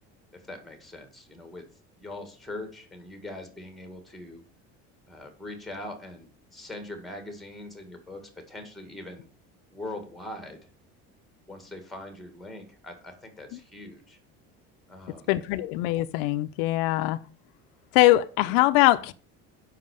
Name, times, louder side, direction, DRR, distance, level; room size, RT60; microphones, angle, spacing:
voice 1, 0.3-1.7 2.0-4.4 5.1-9.3 9.7-10.7 11.4-14.2 14.9-15.3, left 2 dB, ahead, 1.8 m, -42 dB
voice 2, 15.3-17.2 17.9-19.1, left 17 dB, 90° left, 0.7 m, -22 dB
7.5 x 5.8 x 6.9 m
cardioid pair, 170°, 30 cm